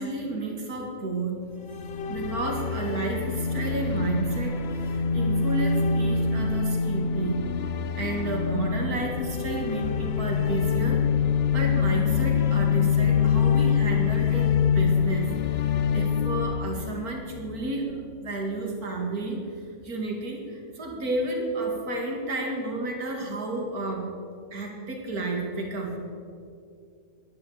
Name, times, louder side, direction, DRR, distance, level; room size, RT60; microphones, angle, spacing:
voice 1, 0.0-1.4 2.1-7.4 8.0-11.0 11.5-19.4 19.8-24.1 24.5-26.0, right 2 dB, 85° right, 1 dB, 2.6 m, -31 dB
sound 1, 1.6-17.7, left 6 dB, 60° left, 0.7 m, -25 dB
11.0 x 11.0 x 7.3 m, 2.5 s
omnidirectional pair, 1.5 m